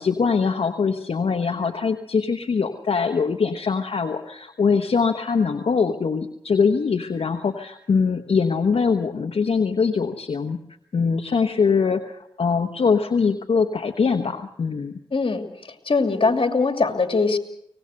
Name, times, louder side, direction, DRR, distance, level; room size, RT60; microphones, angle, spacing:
voice 1, 0.0-10.6 10.9-14.9, left 5 dB, 85° left, 4 dB, 1.1 m, -22 dB
voice 2, 15.1-17.4, left 4 dB, 65° left, 6 dB, 2.7 m, -22 dB
24.0 x 19.5 x 6.5 m, 0.72 s
cardioid pair, 40°, 10 cm